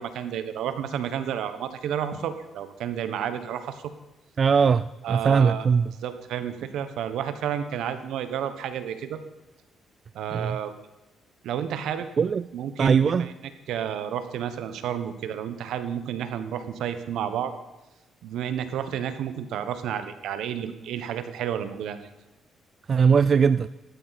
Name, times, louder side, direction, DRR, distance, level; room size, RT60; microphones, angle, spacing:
voice 1, 0.0-3.8 5.0-5.7 6.0-9.2 10.1-10.8 11.4-12.1 12.5-13.3 13.7-17.5 18.2-22.1, right 9 dB, 80° right, 1.2 m, -31 dB
voice 2, 4.4-5.9 10.3-10.6 12.2-12.5 12.8-13.3 22.9-23.7, right 6 dB, 45° right, 0.3 m, -20 dB
14.5 x 12.0 x 4.2 m
cardioid pair, 90°, 0 cm